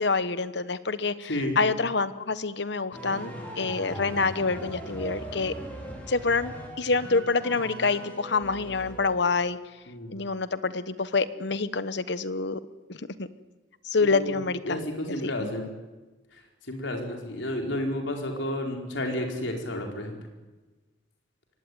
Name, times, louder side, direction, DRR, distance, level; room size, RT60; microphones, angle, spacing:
voice 1, 0.0-5.5 6.1-9.6 10.1-12.6 12.9-13.3 13.8-14.8 15.2-15.7, left 4 dB, 65° left, 14 dB, 1.1 m, -27 dB
sound 1, 2.9-9.4, right 1 dB, 10° left, 5.3 m, -40 dB
voice 2, 9.9-10.2 14.1-14.4 14.6-15.7 16.7-20.2, left 1 dB, 85° left, 2 dB, 4.7 m, -31 dB
23.0 x 18.0 x 9.5 m, 1.2 s
head